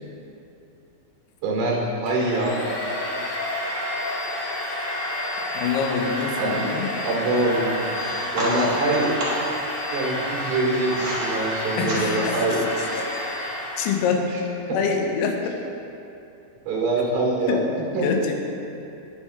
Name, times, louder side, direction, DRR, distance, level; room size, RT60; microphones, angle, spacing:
voice 1, 1.4-2.6 6.4-6.6 7.0-7.9 8.3-9.1 9.9-12.6 14.7-14.8 16.7-17.6 17.9-18.1, right 2 dB, 80° right, -3 dB, 4.5 m, -24 dB
Domestic sounds home sounds, 2.1-14.2, left 1 dB, 70° left, 1.3 m, -30 dB
voice 2, 5.5-6.9 7.3-7.6 8.4-8.8 11.8-12.4 12.9-13.0 13.8-14.5 14.7-15.4 17.0-17.1 17.5-18.5, left 6 dB, 90° left, 2 dB, 3.5 m, -26 dB
sound 1, 7.9-9.5 10.3-11.3 11.7-12.4, right 1 dB, 45° right, 2.8 m, -31 dB
19.0 x 7.5 x 2.3 m, 2.8 s
omnidirectional pair, 6.0 m